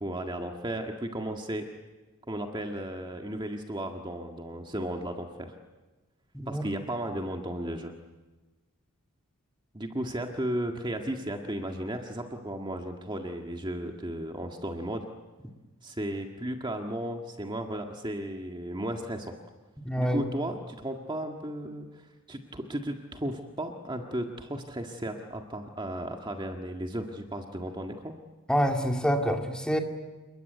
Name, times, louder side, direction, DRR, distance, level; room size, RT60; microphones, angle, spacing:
voice 1, 0.0-1.7 2.3-5.5 6.5-7.9 9.7-15.1 15.8-19.3 20.0-28.2, right 1 dB, 20° right, 3 dB, 1.7 m, -35 dB
voice 2, 19.8-20.2 28.5-29.8, equal, 5° left, 3 dB, 2.3 m, -26 dB
28.5 x 21.5 x 9.3 m, 1.2 s
head